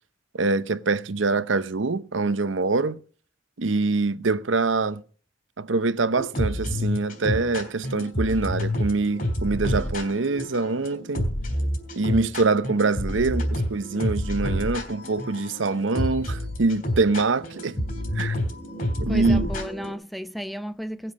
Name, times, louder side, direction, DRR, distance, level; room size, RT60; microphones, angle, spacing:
voice 1, 0.3-3.0 3.6-5.0 5.6-11.3 12.0-18.3 19.0-19.4, right 3 dB, 80° right, 0.8 m, -24 dB
sound 1, 6.2-19.9, left 1 dB, 45° left, 3.7 m, -29 dB
voice 2, 19.1-21.1, equal, ahead, 0.6 m, -33 dB
18.0 x 7.8 x 6.4 m
head